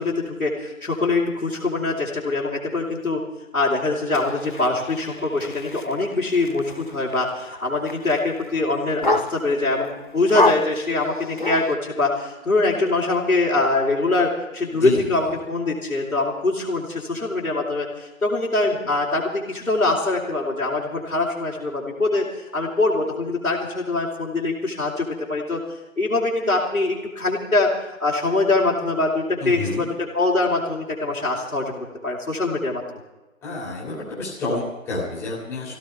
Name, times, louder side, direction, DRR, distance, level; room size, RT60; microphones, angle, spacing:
voice 1, 0.0-3.2 3.5-25.6 26.0-27.7 28.0-32.8, left 2 dB, 80° left, -6 dB, 4.1 m, -23 dB
sound 1, 4.1-9.7 10.2-11.7, left 2 dB, 40° left, 0.5 m, -28 dB
voice 2, 14.7-15.1 29.4-29.9 33.4-35.8, left 3 dB, 5° left, -6 dB, 3.1 m, -29 dB
22.5 x 16.5 x 3.5 m, 1.1 s
figure-of-eight pair, 155°, 41 cm